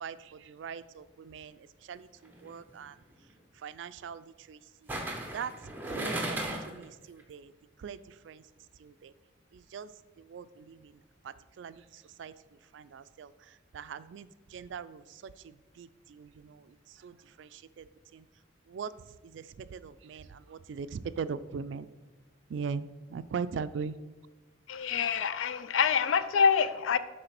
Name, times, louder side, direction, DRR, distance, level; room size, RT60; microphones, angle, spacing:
voice 1, 0.0-3.0 3.5-4.9 5.3-5.5 5.9-7.5 7.8-8.4 8.8-9.1 9.5-9.9 10.2-17.9 18.1-18.3 18.7-18.9 19.2-21.9 22.5-24.0, right 6 dB, 65° right, 15 dB, 0.3 m, -41 dB
sound 1, 2.3-2.5 4.9-6.8 7.2-7.3, right 1 dB, 10° right, 0.8 m, -35 dB
voice 2, 24.7-27.0, left 6 dB, 90° left, 14 dB, 0.4 m, -26 dB
7.9 x 3.2 x 5.8 m, 1.2 s
head